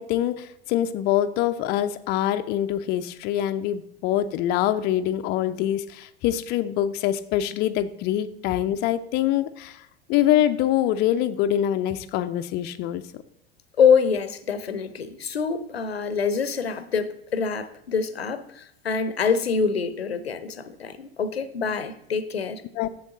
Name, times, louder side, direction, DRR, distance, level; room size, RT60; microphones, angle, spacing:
voice 1, 0.0-9.8 10.1-13.2 22.8-22.9, left 12 dB, 35° left, 0.5 m, -24 dB
voice 2, 13.8-22.6, left 6 dB, 80° left, 0.7 m, -25 dB
7.6 x 7.1 x 3.9 m
figure-of-eight pair, 85°, 30 cm